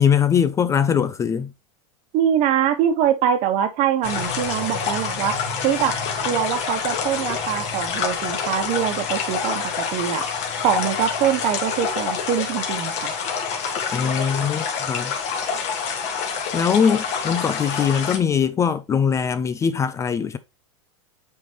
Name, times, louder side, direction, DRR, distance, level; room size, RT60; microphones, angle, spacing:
voice 1, 0.0-1.5 13.9-15.1 16.5-20.4, left 7 dB, 20° left, 0.4 m, -21 dB
voice 2, 2.1-6.0 6.2-10.3 10.6-13.2, right 9 dB, 45° right, 1.3 m, -23 dB
sound 1, 4.0-18.2, left 6 dB, 40° left, 1.8 m, -27 dB
8.4 x 3.8 x 3.0 m
supercardioid pair, 140°, 17 cm